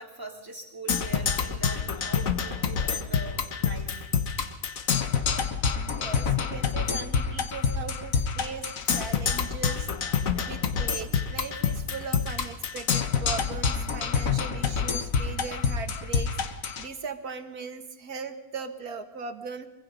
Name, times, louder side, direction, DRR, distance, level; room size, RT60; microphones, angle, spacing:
voice 1, 0.0-4.1 10.2-10.6, right 3 dB, 15° right, -1 dB, 3.2 m, -42 dB
Percussion, 0.9-16.9, left 6 dB, 65° left, 1.6 m, -27 dB
voice 2, 6.0-16.4 16.8-19.7, right 5 dB, 80° right, 7 dB, 2.0 m, -39 dB
24.0 x 24.0 x 5.4 m, 0.96 s
omnidirectional pair, 1.6 m